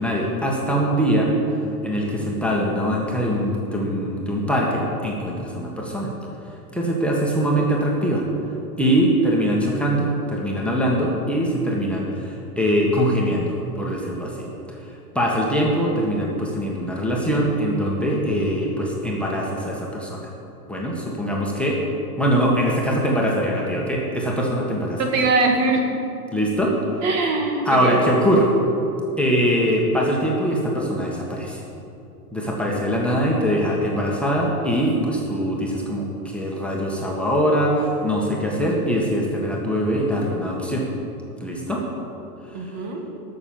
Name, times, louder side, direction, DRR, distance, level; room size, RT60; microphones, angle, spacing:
voice 1, 0.0-1.3 1.8-6.1 6.7-8.2 8.8-14.8 15.2-20.2 20.7-21.8 22.2-25.0 26.3-26.7 27.7-28.5 29.2-31.6 32.3-40.9 41.4-41.8, equal, ahead, -3 dB, 1.7 m, -22 dB
voice 2, 25.0-25.9 27.0-28.0 42.5-43.1, right 3 dB, 45° right, 2 dB, 2.0 m, -22 dB
12.0 x 6.7 x 7.2 m, 2.8 s
hypercardioid pair, 120°, 46 cm